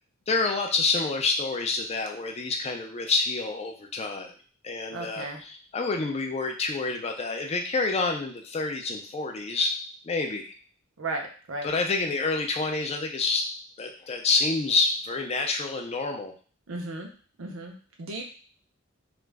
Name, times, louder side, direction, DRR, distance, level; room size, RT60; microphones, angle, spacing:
voice 1, 0.3-4.3 4.6-9.7 10.0-10.5 11.6-13.5 13.8-16.3, left 3 dB, 30° left, 3 dB, 0.4 m, -28 dB
voice 2, 4.9-5.4 11.0-11.7 16.7-17.1 17.4-18.2, right 2 dB, 75° right, 1 dB, 0.6 m, -35 dB
2.4 x 2.0 x 3.3 m, 0.41 s
head